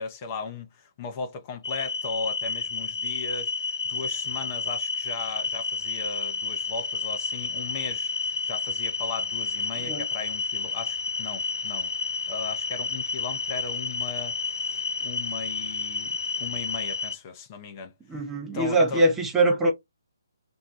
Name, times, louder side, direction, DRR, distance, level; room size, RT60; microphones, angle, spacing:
voice 1, 0.0-11.9 12.3-18.2 18.5-19.0, left 5 dB, 30° left, 0.7 m, -37 dB
sound 1, 1.6-17.2, left 4 dB, 75° left, 0.4 m, -30 dB
voice 2, 18.1-19.7, right 1 dB, 10° right, 0.7 m, -22 dB
2.7 x 2.2 x 4.0 m
figure-of-eight pair, 140°, 2 cm